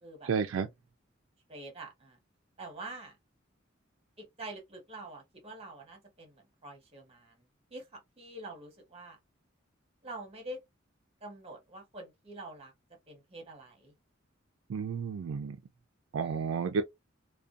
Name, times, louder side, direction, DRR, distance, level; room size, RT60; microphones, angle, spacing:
voice 1, 0.2-0.7 14.7-15.6 16.1-16.8, right 5 dB, 70° right, 0.3 m, -31 dB
voice 2, 1.5-2.2 2.6-3.2 4.2-7.3 7.7-9.2 10.0-10.6 11.2-12.7 13.1-13.9 16.2-16.4, right 2 dB, 30° right, 0.9 m, -46 dB
2.5 x 2.2 x 2.4 m
head